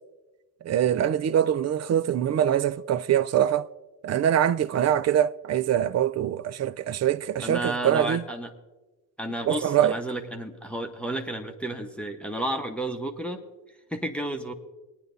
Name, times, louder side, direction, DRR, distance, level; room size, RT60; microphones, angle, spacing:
voice 1, 0.6-3.7 4.0-8.2 9.5-9.9, right 10 dB, 35° right, 0.5 m, -23 dB
voice 2, 7.4-8.5 9.2-14.5, right 1 dB, ahead, 1.0 m, -32 dB
21.5 x 9.8 x 2.7 m
hypercardioid pair, 55°, 47 cm